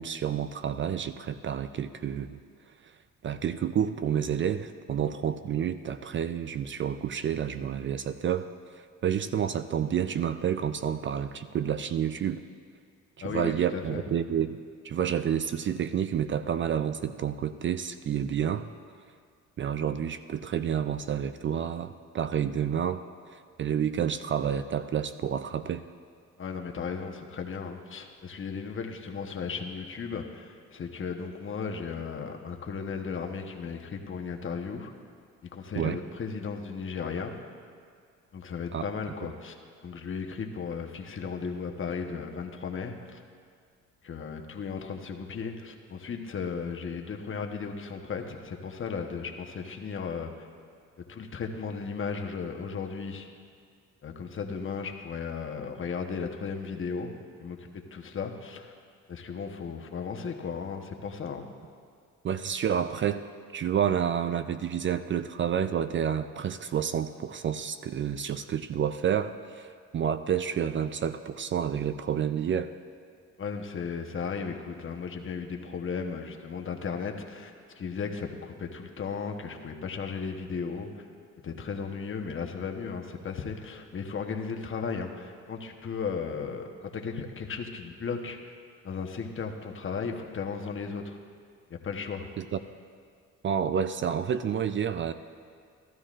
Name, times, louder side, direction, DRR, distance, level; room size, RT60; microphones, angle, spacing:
voice 1, 0.0-2.4 2.8-2.9 3.2-8.5 8.7-12.4 13.2-18.7 19.6-23.0 23.3-25.8 35.8-36.0 38.7-38.8 62.2-72.7 92.4-92.6 93.4-95.1, right 8 dB, 40° right, 11 dB, 0.4 m, -29 dB
voice 2, 13.2-14.0 26.4-34.9 35.4-37.4 38.3-39.6 39.8-43.2 44.0-50.3 51.0-53.3 54.0-58.7 59.1-61.5 73.4-81.0 81.4-88.5 88.8-91.2 91.7-92.3, left 5 dB, 40° left, 3 dB, 1.0 m, -35 dB
15.0 x 12.5 x 2.5 m, 2.1 s
cardioid pair, 90°, 30 cm